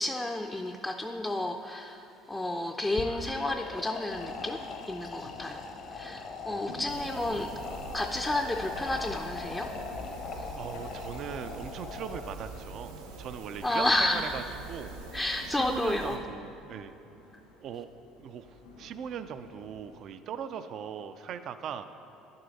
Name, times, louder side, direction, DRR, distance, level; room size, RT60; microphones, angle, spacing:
voice 1, 0.0-5.6 5.9-7.5 7.9-9.7 10.4-10.5 13.6-14.3 15.1-16.2, left 1 dB, 10° left, 2 dB, 0.4 m, -31 dB
sound 1, 2.9-12.6, left 4 dB, 55° left, 0.8 m, -41 dB
sound 2, 4.1-20.0, left 1 dB, 85° left, 2.2 m, -50 dB
sound 3, 6.9-16.2, right 3 dB, 85° right, 0.8 m, -44 dB
voice 2, 10.6-12.9 13.2-14.4 14.7-14.9 15.5-16.9 17.6-17.9 18.2-21.8, right 8 dB, 55° right, 10 dB, 0.3 m, -39 dB
10.5 x 6.5 x 4.1 m, 2.9 s
hypercardioid pair, 75°, 0 cm